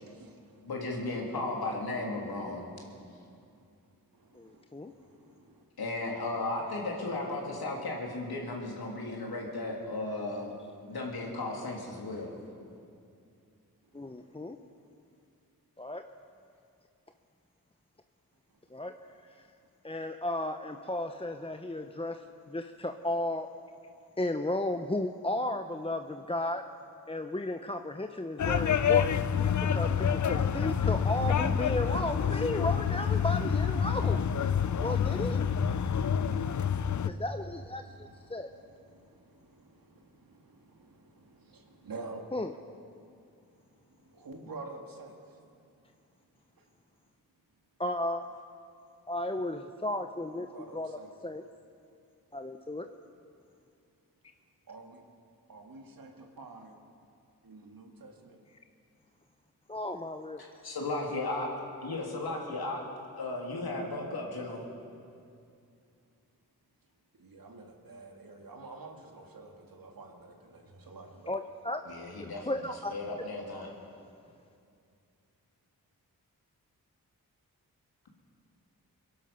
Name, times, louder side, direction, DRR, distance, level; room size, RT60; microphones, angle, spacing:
voice 1, 0.0-0.4 4.3-5.6 39.4-39.9 40.3-40.8 41.1-42.2 44.1-45.2 50.5-51.1 54.7-55.0 55.5-56.8 57.4-58.4 67.2-71.3, right 3 dB, 65° right, 2 dB, 2.2 m, -48 dB
voice 2, 0.6-2.6 5.8-10.5 10.9-12.3 60.4-61.5 61.8-62.8 63.2-64.6 71.9-72.5 72.9-73.7, left 2 dB, 75° left, -1 dB, 2.9 m, -35 dB
voice 3, 4.3-4.9 13.9-14.6 15.8-16.1 18.7-19.0 19.3-19.5 19.8-23.5 24.2-26.6 27.1-29.2 29.6-34.2 34.8-35.4 37.0-38.5 42.3-42.6 47.8-48.2 49.1-51.4 52.3-52.9 59.7-60.4 71.3-71.8 72.5-72.9, left 1 dB, 15° left, 6 dB, 0.8 m, -34 dB
sound 1, 28.4-37.1, left 7 dB, 50° left, 0.6 m, -27 dB
22.5 x 11.5 x 5.5 m, 2.5 s
cardioid pair, 40°, 38 cm